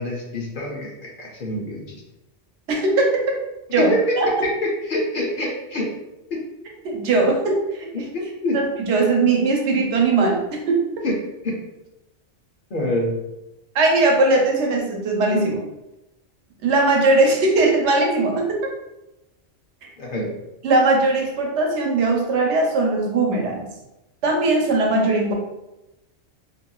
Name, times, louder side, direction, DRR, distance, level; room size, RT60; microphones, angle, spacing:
voice 1, 0.0-2.0 3.8-4.1 4.9-5.9 6.3-6.4 7.9-8.6 11.0-11.1 11.4-11.5 12.7-13.1 20.0-20.3, left 1 dB, 55° left, -2 dB, 0.7 m, -26 dB
voice 2, 2.7-3.1 3.7-3.9 4.2-4.5 6.8-8.1 8.5-10.8 13.7-15.6 16.6-18.6 19.8-19.9 20.6-23.7 24.2-25.3, right 2 dB, 90° right, 0 dB, 1.0 m, -19 dB
2.8 x 2.6 x 2.2 m, 0.94 s
omnidirectional pair, 1.1 m